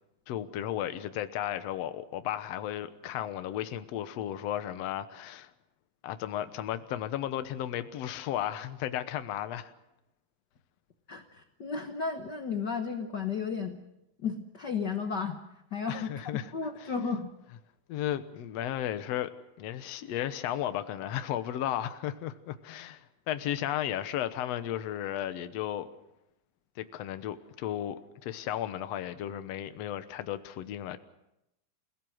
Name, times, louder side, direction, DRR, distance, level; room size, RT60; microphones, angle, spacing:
voice 1, 0.3-5.5 6.0-9.7 15.9-16.5 16.8-16.9 17.9-19.3 19.6-25.9 26.8-31.0, left 11 dB, 65° left, 10 dB, 1.8 m, -34 dB
voice 2, 11.1-13.8 14.2-15.4 15.7-17.3, left 5 dB, 90° left, 6 dB, 0.9 m, -33 dB
29.0 x 17.5 x 6.4 m, 0.87 s
omnidirectional pair, 3.9 m